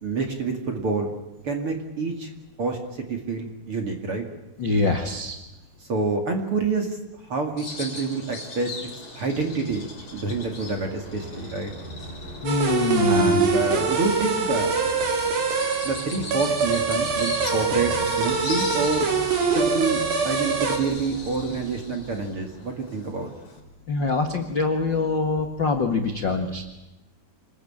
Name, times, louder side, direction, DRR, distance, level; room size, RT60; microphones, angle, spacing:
voice 1, 0.0-1.1 1.4-2.3 2.6-4.2 5.9-7.0 7.3-8.7 9.1-9.9 10.1-11.7 13.1-14.8 15.8-19.1 19.5-23.3, right 4 dB, 40° right, 4 dB, 2.4 m, -27 dB
voice 2, 4.6-5.4 12.4-13.4 23.9-26.6, left 4 dB, 60° left, 5 dB, 1.1 m, -24 dB
Bird vocalization bird call bird song, 7.6-23.6, left 3 dB, 45° left, 6.9 m, -39 dB
sound 1, 9.5-23.4, right 2 dB, 90° right, 8.0 m, -42 dB
sound 2, 12.5-20.8, right 4 dB, 60° right, 4.7 m, -24 dB
28.0 x 20.5 x 8.8 m, 0.98 s
omnidirectional pair, 5.0 m